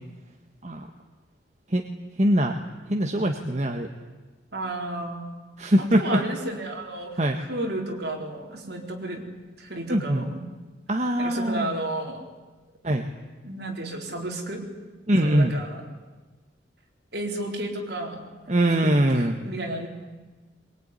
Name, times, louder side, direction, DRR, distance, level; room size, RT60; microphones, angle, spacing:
voice 1, 2.2-2.6 2.9-3.9 5.6-6.2 7.2-7.4 9.9-10.2 10.9-11.7 12.8-13.1 15.1-15.5 18.5-19.4, right 1 dB, 35° right, 3 dB, 1.5 m, -22 dB
voice 2, 4.5-5.3 5.8-7.2 7.5-9.3 9.6-10.4 11.2-12.3 13.4-14.6 15.2-16.0 17.1-18.3 18.8-19.9, right 1 dB, 55° right, 1 dB, 4.3 m, -32 dB
22.5 x 21.5 x 9.9 m, 1.3 s
head